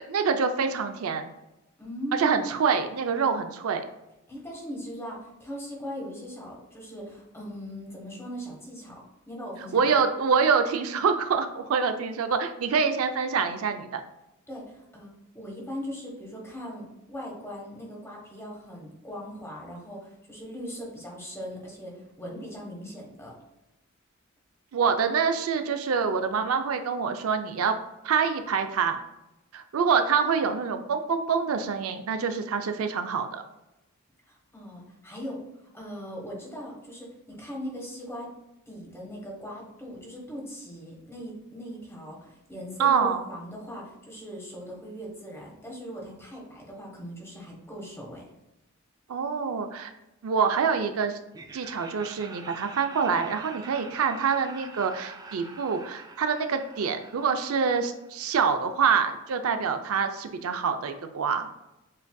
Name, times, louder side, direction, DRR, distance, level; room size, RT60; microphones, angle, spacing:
voice 1, 0.1-1.3 2.2-3.8 9.7-14.0 24.7-27.8 28.0-29.0 29.5-33.4 42.8-43.2 49.1-49.9 50.2-51.2 51.5-61.5, right 6 dB, 90° right, 7 dB, 0.4 m, -26 dB
voice 2, 1.8-2.3 4.3-9.0 9.3-9.8 14.5-23.3 34.3-38.3 38.7-48.2, equal, 10° left, -3 dB, 1.2 m, -39 dB
Laughter, 51.3-58.3, right 3 dB, 20° right, 0.3 m, -46 dB
7.3 x 2.6 x 2.2 m, 0.93 s
head